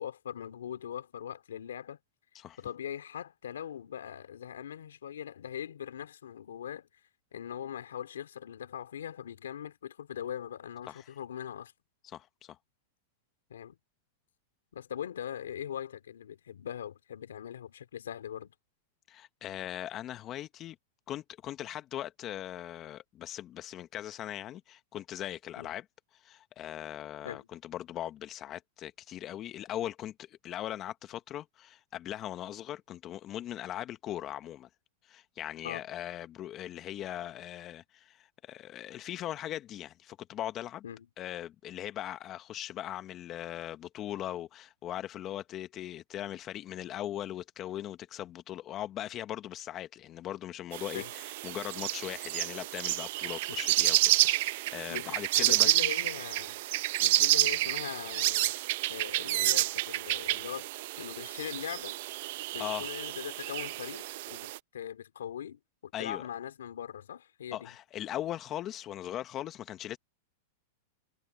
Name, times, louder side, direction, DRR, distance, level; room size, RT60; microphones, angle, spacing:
voice 1, 0.0-2.0 2.6-6.9 7.3-11.7 13.5-13.8 14.7-18.5 25.6-25.7 27.2-27.5 35.6-35.9 40.8-41.1 50.9-51.1 53.5-53.6 54.9-56.6 57.0-58.5 58.9-60.7 61.0-62.0 62.5-67.7, left 9 dB, 90° left, 3.0 m, -41 dB
voice 2, 12.0-12.6 19.1-20.8 21.1-25.8 26.1-34.7 35.0-40.8 41.2-55.7 62.6-62.9 65.9-66.2 67.5-70.0, left 12 dB, 35° left, 1.0 m, -39 dB
sound 1, 50.7-64.6, right 18 dB, 60° right, 0.6 m, -29 dB
hypercardioid pair, 125°, 0 cm